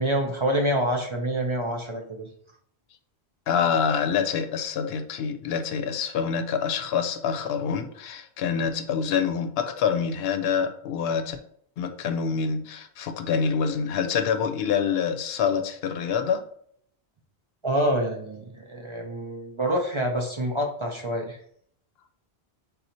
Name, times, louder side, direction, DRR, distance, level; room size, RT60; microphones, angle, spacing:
voice 1, 0.0-2.3 17.6-21.4, right 1 dB, 35° right, 1 dB, 0.5 m, -27 dB
voice 2, 3.5-11.4 11.8-16.4, left 6 dB, 70° left, 7 dB, 0.8 m, -26 dB
4.0 x 2.7 x 4.2 m, 0.63 s
omnidirectional pair, 1.1 m